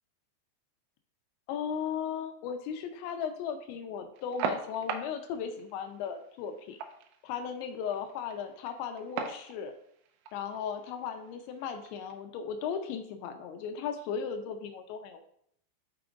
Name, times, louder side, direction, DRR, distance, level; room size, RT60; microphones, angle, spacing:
voice 1, 1.5-6.8 7.2-9.7 10.3-15.2, left 7 dB, 80° left, 7 dB, 2.9 m, -36 dB
sound 1, 4.1-12.1, right 6 dB, 85° right, 3.0 m, -41 dB
6.2 x 5.9 x 3.7 m, 0.68 s
omnidirectional pair, 5.2 m